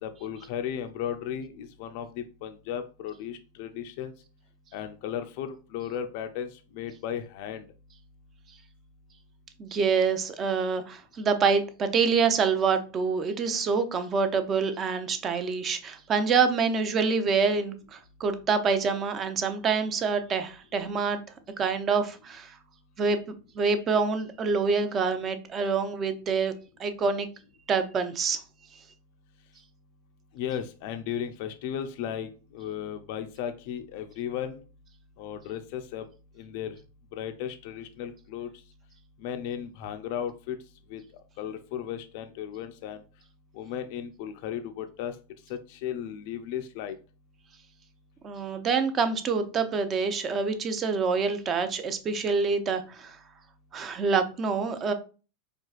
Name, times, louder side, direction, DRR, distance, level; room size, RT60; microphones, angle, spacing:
voice 1, 0.0-4.1 4.7-7.7 30.3-34.6 35.2-36.0 36.4-36.7 37.1-38.5 39.2-40.6 40.9-41.0 41.4-43.0 43.5-45.1 45.5-47.0, left 9 dB, 55° left, 7 dB, 0.4 m, -35 dB
voice 2, 9.6-21.2 21.6-22.6 23.0-26.5 26.8-27.3 27.7-28.4 48.2-53.2 53.7-54.9, right 5 dB, 30° right, 9 dB, 0.5 m, -26 dB
4.5 x 2.3 x 2.4 m, 0.35 s
hypercardioid pair, 125°, 0 cm